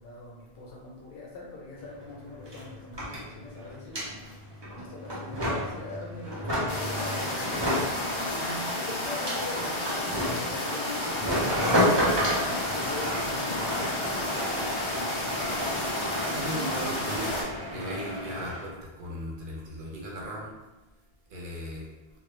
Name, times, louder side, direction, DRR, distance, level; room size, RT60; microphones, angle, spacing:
voice 1, 0.0-13.8, left 2 dB, 70° left, -2 dB, 0.8 m, -42 dB
sound 1, 1.8-1.9 2.1-18.7, equal, 30° right, 0.6 m, -32 dB
sound 2, 6.7-17.4, left 1 dB, 50° left, 0.3 m, -31 dB
voice 2, 16.3-17.4 17.7-20.5 21.3-21.9, equal, 65° right, -3 dB, 0.7 m, -36 dB
2.1 x 2.0 x 3.0 m, 1.1 s
omnidirectional pair, 1.0 m